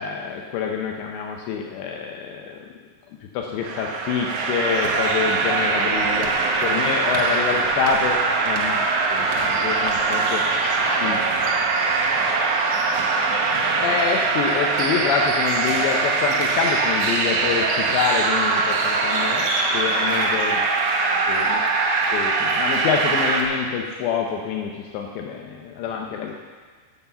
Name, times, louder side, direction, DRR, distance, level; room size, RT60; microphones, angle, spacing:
voice 1, 0.0-2.7 3.3-6.3 6.6-8.2 8.4-10.4 11.0-11.2 13.8-19.4 19.7-20.6 21.3-21.6 22.1-26.3, left 6 dB, 80° left, 1 dB, 2.9 m, -26 dB
sound 1, 3.6-23.4, right 4 dB, 75° right, 1.7 m, -22 dB
voice 2, 9.5-13.5 13.8-13.9 18.5-20.7 21.0-21.8 22.1-22.2 25.9-26.1, left 3 dB, 50° left, -3 dB, 3.0 m, -37 dB
11.0 x 8.0 x 6.8 m, 1.5 s
omnidirectional pair, 5.2 m